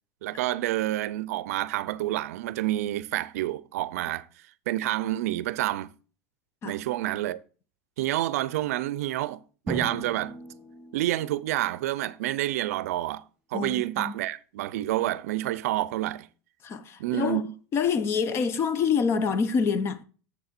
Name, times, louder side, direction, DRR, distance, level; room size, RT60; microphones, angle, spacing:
voice 1, 0.2-4.3 4.7-5.9 6.6-7.4 8.0-9.4 9.7-10.4 10.9-13.2 13.5-16.3 17.0-17.5, right 15 dB, 80° right, 0.5 m, -28 dB
Drum, 9.7-12.2, right 2 dB, 10° right, 2.6 m, -38 dB
voice 2, 13.5-14.1 16.6-17.4 17.7-20.0, left 6 dB, 30° left, 0.7 m, -26 dB
7.4 x 6.5 x 4.4 m
supercardioid pair, 140°, 8 cm